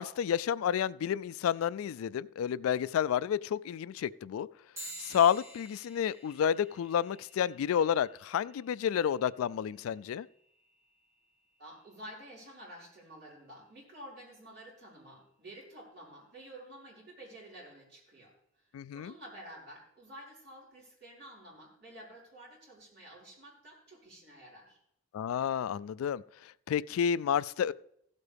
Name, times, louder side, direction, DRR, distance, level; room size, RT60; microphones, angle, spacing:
voice 1, 0.0-4.5 5.0-10.3 18.7-19.1 25.1-26.2 26.7-27.7, left 8 dB, 85° left, 0.3 m, -30 dB
sound 1, 4.7-14.6, right 1 dB, 10° right, 2.2 m, -53 dB
voice 2, 11.6-18.6 18.9-24.8, right 1 dB, 50° right, 5.0 m, -50 dB
15.5 x 8.3 x 3.4 m
head